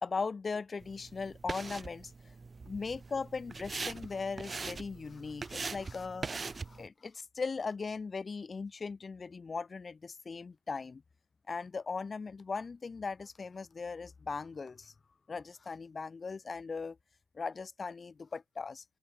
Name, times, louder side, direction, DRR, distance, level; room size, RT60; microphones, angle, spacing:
voice 1, 0.0-2.3 2.6-11.0 11.5-14.9 15.3-17.0 17.3-18.8, left 4 dB, 35° left, 1.8 m, -39 dB
sound 1, 0.8-6.9, right 4 dB, 30° right, 2.0 m, -42 dB
open air
cardioid pair, 90°, 0 cm